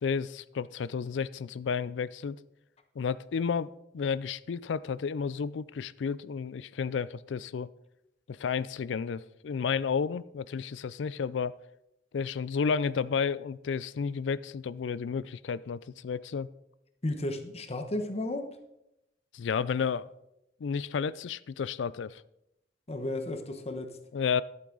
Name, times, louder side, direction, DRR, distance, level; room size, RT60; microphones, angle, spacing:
voice 1, 0.0-2.4 3.0-7.7 8.3-11.6 12.1-16.5 19.3-20.1 20.6-22.2 24.1-24.4, left 6 dB, 85° left, 18 dB, 0.4 m, -32 dB
voice 2, 17.0-18.6 22.9-24.0, left 1 dB, 35° left, 6 dB, 1.1 m, -33 dB
11.5 x 8.3 x 3.9 m, 0.84 s
head